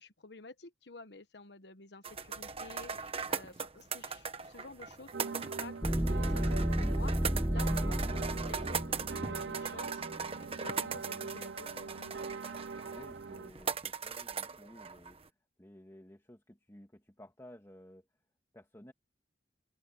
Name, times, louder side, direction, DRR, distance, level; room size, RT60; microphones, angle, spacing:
voice 1, 0.0-10.0 10.5-12.1, left 3 dB, 70° left, 1.2 m, -51 dB
sound 1, 2.0-15.3, right 5 dB, 35° right, 1.3 m, -40 dB
sound 2, 5.1-13.5, right 4 dB, 80° right, 0.6 m, -43 dB
sound 3, 5.8-10.4, equal, 5° right, 0.3 m, -32 dB
voice 2, 12.9-18.1 18.5-18.9, left 1 dB, 15° left, 2.3 m, -55 dB
open air
head